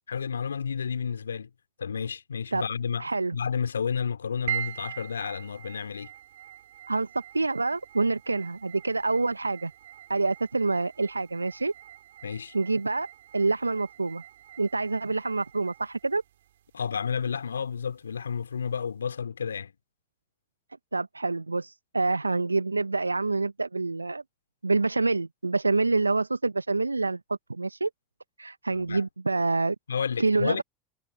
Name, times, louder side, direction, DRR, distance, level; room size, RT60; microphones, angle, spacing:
voice 1, 0.1-1.5 1.8-3.1 3.3-6.1 12.2-12.5 16.7-19.7 28.7-29.0 29.9-30.6, left 6 dB, 80° left, 2.8 m, -31 dB
voice 2, 3.0-3.4 6.9-7.1 7.3-9.7 10.1-11.7 12.5-13.1 13.3-14.2 14.6-16.2 20.9-24.2 24.6-27.2 27.5-27.9 28.4-29.8 30.2-30.6, right 3 dB, 85° right, 0.9 m, -27 dB
sound 1, 4.5-18.9, right 12 dB, 70° right, 2.7 m, -43 dB
figure-of-eight pair, 75°, 0 cm